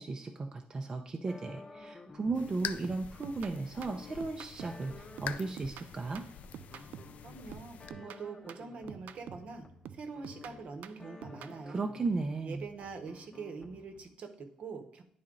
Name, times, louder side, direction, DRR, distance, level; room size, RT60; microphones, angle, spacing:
voice 1, 0.0-6.2 11.7-12.6, right 3 dB, 25° right, 4 dB, 0.5 m, -35 dB
sound 1, 1.3-14.2, left 3 dB, 25° left, 0.7 m, -54 dB
sound 2, 2.3-7.9, left 9 dB, 70° left, 0.4 m, -45 dB
sound 3, 2.3-2.5 2.8-4.9 5.2-7.2 7.5-9.5 9.8-11.6, right 9 dB, 90° right, 0.4 m, -49 dB
voice 2, 7.2-11.8 12.4-15.0, right 4 dB, 55° right, 6 dB, 0.9 m, -44 dB
10.0 x 4.2 x 3.8 m, 0.66 s
wide cardioid pair, 160°, 3 cm